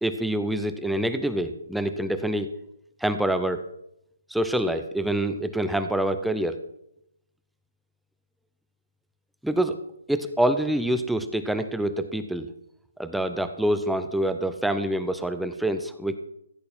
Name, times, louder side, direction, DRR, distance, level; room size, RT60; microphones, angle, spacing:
voice 1, 0.0-2.5 3.0-3.6 4.3-6.6 9.4-9.8 10.1-12.5 13.0-16.2, right 1 dB, ahead, 9 dB, 0.5 m, -26 dB
15.0 x 8.5 x 4.3 m, 0.81 s
hypercardioid pair, 150°, 0 cm